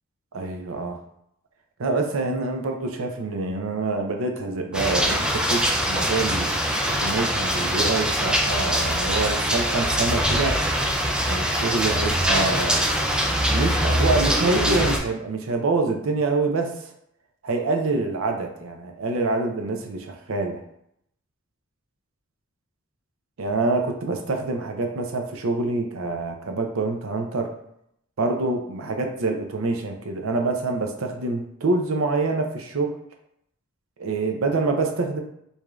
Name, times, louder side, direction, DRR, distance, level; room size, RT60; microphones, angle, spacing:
voice 1, 0.3-1.0 1.8-10.6 11.3-12.8 13.4-16.9 17.4-20.6 23.4-27.5 28.2-33.0 34.0-35.2, right 3 dB, 70° right, 4 dB, 0.5 m, -26 dB
sound 1, 4.7-15.0, equal, 5° right, 0.4 m, -23 dB
4.8 x 2.7 x 2.3 m, 0.75 s
head